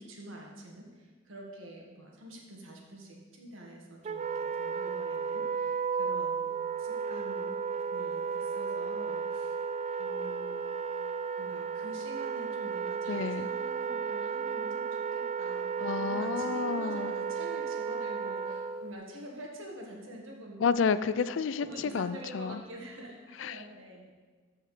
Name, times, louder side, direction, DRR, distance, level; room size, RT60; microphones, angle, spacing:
voice 1, 0.0-6.5 6.8-7.6 7.9-9.6 10.0-11.0 11.4-20.6 21.6-24.1, right 1 dB, 85° right, 0 dB, 1.8 m, -46 dB
Wind instrument woodwind instrument, 4.0-18.9, right 6 dB, 35° right, 0.4 m, -34 dB
voice 2, 13.1-13.5 15.8-17.1 20.6-22.6 23.4-23.6, left 6 dB, 65° left, 14 dB, 0.4 m, -30 dB
13.5 x 4.8 x 4.9 m, 1.4 s
head